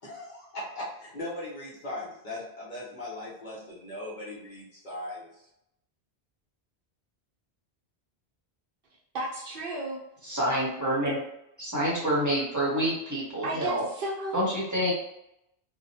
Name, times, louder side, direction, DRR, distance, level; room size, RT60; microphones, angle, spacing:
voice 1, 0.0-5.3, left 1 dB, 50° left, -6 dB, 0.9 m, -39 dB
voice 2, 9.1-10.0 13.4-14.4, right 2 dB, 60° right, -3 dB, 0.7 m, -33 dB
voice 3, 10.3-11.2 11.6-13.8 14.3-14.9, equal, 20° right, -7 dB, 0.7 m, -27 dB
2.8 x 2.1 x 2.7 m, 0.81 s
omnidirectional pair, 1.1 m